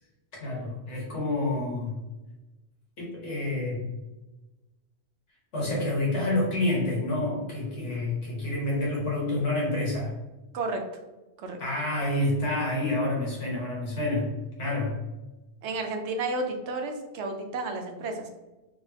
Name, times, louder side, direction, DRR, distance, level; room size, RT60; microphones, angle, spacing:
voice 1, 0.4-2.0 3.0-3.9 5.5-10.1 11.6-15.0, left 2 dB, 85° left, -4 dB, 1.6 m, -28 dB
voice 2, 15.6-18.3, right 3 dB, 80° right, 4 dB, 0.9 m, -32 dB
3.7 x 3.2 x 2.8 m, 1.1 s
omnidirectional pair, 1.2 m